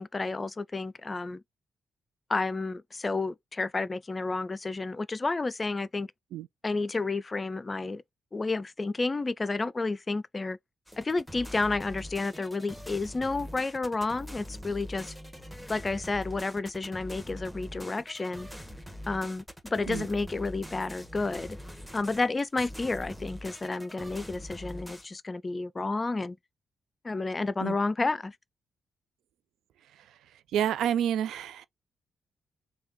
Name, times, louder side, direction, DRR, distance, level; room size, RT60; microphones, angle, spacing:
voice 1, 0.0-1.4 2.3-6.1 6.6-8.0 8.3-10.6 11.0-15.1 15.7-18.5 19.1-21.6 21.9-26.4 27.0-28.4, left 3 dB, 35° left, 0.4 m, -31 dB
sound 1, 10.9-25.0, equal, ahead, 1.3 m, -43 dB
voice 2, 30.5-31.6, right 10 dB, 75° right, 0.3 m, -29 dB
3.5 x 2.3 x 4.1 m
hypercardioid pair, 40°, 0 cm